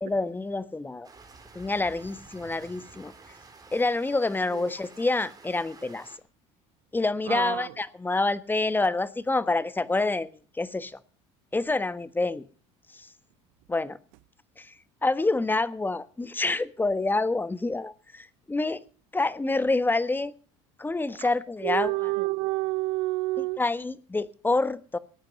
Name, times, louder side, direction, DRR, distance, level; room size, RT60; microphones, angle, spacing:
voice 1, 0.0-1.1 1.5-3.1 3.7-6.1 6.9-10.3 10.5-11.0 11.5-12.4 12.9-13.1 13.7-14.0 14.6-14.7 15.0-18.8 19.1-20.3 20.8-22.1 23.4-25.0, left 2 dB, 15° left, 1.3 m, -27 dB
sound 1, 1.0-6.2, right 4 dB, 25° right, 3.9 m, -50 dB
voice 2, 7.3-7.7 21.2-21.3 21.6-23.6, right 22 dB, 70° right, 0.5 m, -28 dB
19.0 x 8.9 x 5.3 m
supercardioid pair, 85°, 15 cm